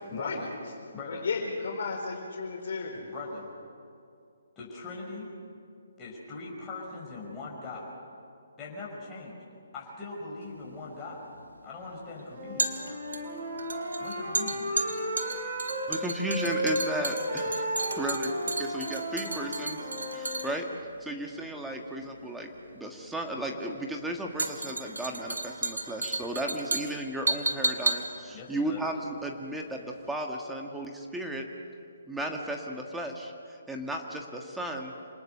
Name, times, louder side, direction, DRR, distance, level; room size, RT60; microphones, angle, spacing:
voice 1, 0.1-0.5 0.9-1.3 3.1-3.5 4.6-5.3 6.0-7.9 8.6-9.3 9.7-11.2 11.6-12.7 14.0-14.6 28.3-28.8, left 3 dB, 20° left, -5 dB, 5.5 m, -40 dB
voice 2, 1.1-3.1, left 4 dB, 60° left, 0 dB, 4.7 m, -33 dB
sound 1, 10.5-29.7 30.0-30.1, right 3 dB, 85° right, 2.0 m, -34 dB
Wind instrument woodwind instrument, 12.3-15.9 16.3-20.5, equal, 40° right, 7.2 m, -34 dB
voice 3, 15.9-19.8 20.1-20.7 21.0-22.5 22.7-31.4 32.1-33.3 33.7-34.9, right 1 dB, 5° right, 2 dB, 1.7 m, -34 dB
26.5 x 19.5 x 6.7 m, 2.4 s
figure-of-eight pair, 145°, 0 cm